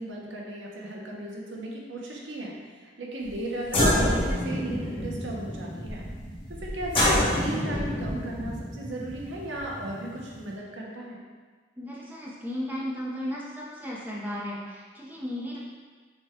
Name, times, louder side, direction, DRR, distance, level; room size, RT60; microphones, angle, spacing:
voice 1, 0.0-6.1 6.5-7.0 7.3-11.2, right 1 dB, 85° right, -2 dB, 0.8 m, -36 dB
sound 1, 3.3-3.4 3.6-10.5, left 1 dB, 30° left, 1.1 m, -27 dB
voice 2, 11.8-15.6, equal, 10° right, -5 dB, 0.7 m, -35 dB
5.9 x 2.3 x 3.5 m, 1.5 s
head